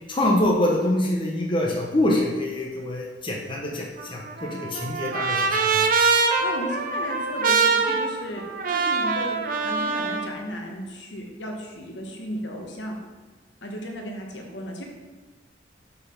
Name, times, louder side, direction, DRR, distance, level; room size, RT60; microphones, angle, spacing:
voice 1, 0.1-5.9, left 1 dB, 25° left, -2 dB, 0.7 m, -25 dB
Trumpet, 4.0-10.3, right 4 dB, 50° right, 0.5 m, -24 dB
voice 2, 6.1-13.0 13.6-14.8, equal, 75° left, 1 dB, 1.1 m, -35 dB
5.6 x 4.0 x 5.5 m, 1.2 s
head